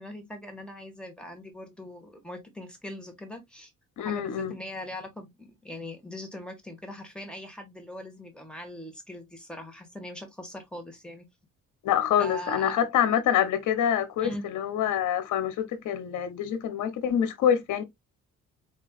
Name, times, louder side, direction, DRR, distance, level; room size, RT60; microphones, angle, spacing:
voice 1, 0.0-3.7 4.0-11.3 12.2-12.8 14.2-14.4, left 1 dB, 5° left, 1.7 m, -41 dB
voice 2, 4.0-4.5 11.8-17.8, left 9 dB, 80° left, 1.0 m, -26 dB
4.5 x 3.1 x 2.4 m
cardioid pair, 90°, 30 cm